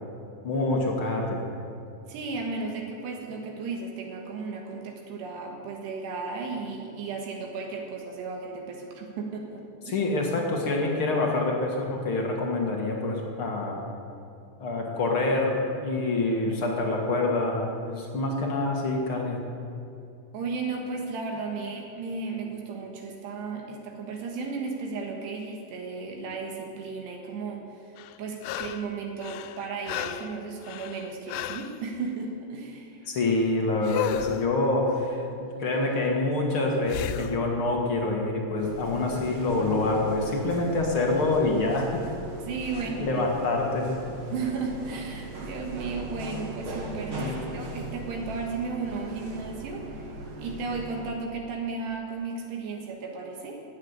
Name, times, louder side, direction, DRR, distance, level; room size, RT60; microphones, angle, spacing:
voice 1, 0.4-1.5 9.9-13.8 14.6-19.4 33.1-42.0 42.8-44.0 47.1-47.6, left 2 dB, 55° left, 0 dB, 1.4 m, -26 dB
voice 2, 2.1-10.0 20.3-33.0 42.4-43.2 44.3-50.1 50.4-53.6, right 4 dB, 75° right, 1 dB, 3.6 m, -34 dB
sound 1, 28.0-28.9 29.2-31.8 33.8-34.5 36.9-37.4 40.3-40.4, left 12 dB, 80° left, 2.4 m, -34 dB
sound 2, 38.6-51.2, right 1 dB, 45° right, 2.0 m, -39 dB
17.0 x 8.0 x 9.8 m, 2.6 s
omnidirectional pair, 5.0 m